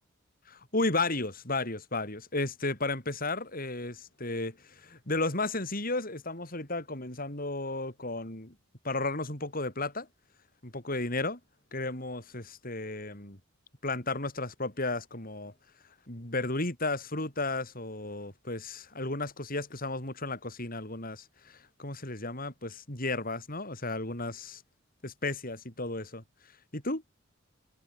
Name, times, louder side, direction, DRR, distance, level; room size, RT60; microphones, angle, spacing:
voice 1, 0.5-8.5 8.8-10.1 10.6-11.4 11.7-13.4 13.8-15.5 16.1-24.6 25.0-26.2 26.7-27.0, left 2 dB, 45° left, 6.8 m, -33 dB
head